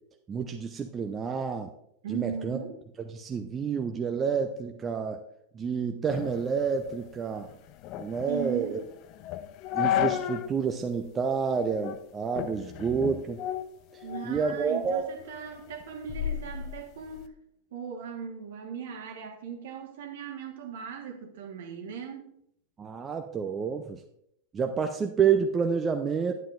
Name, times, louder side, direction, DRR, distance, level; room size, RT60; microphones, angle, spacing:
voice 1, 0.3-1.7 2.1-2.6 3.1-5.2 5.5-7.5 8.0-8.8 9.7-13.4 14.2-15.1 22.8-24.0 24.5-26.3, right 6 dB, 20° right, 5 dB, 0.6 m, -29 dB
voice 2, 2.0-2.8 8.3-8.8 14.0-17.3 17.7-22.3, right 7 dB, 55° right, 3 dB, 1.5 m, -38 dB
sound 1, 6.1-10.6 10.9-11.0 11.6-12.0 12.4-14.4 14.8-17.3, left 11 dB, 40° left, 0.5 m, -34 dB
10.0 x 9.3 x 2.5 m, 0.74 s
figure-of-eight pair, 90°, 0 cm